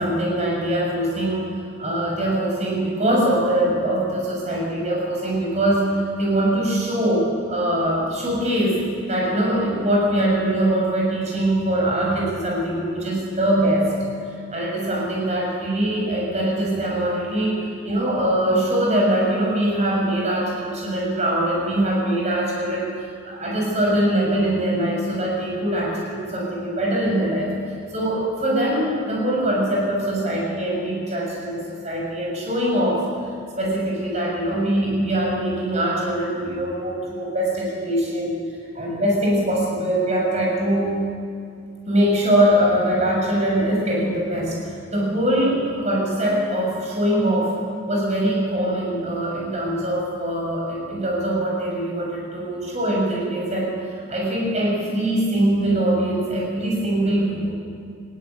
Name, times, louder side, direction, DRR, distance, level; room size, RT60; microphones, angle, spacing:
voice 1, 0.0-1.5 1.8-8.8 9.1-13.9 14.5-22.9 23.2-27.5 27.9-33.0 33.6-38.3 38.7-41.0 41.9-44.6 44.9-47.5 47.9-53.7 54.1-57.5, right 1 dB, 35° right, -2 dB, 6.9 m, -22 dB
20.0 x 17.0 x 9.0 m, 2.3 s
head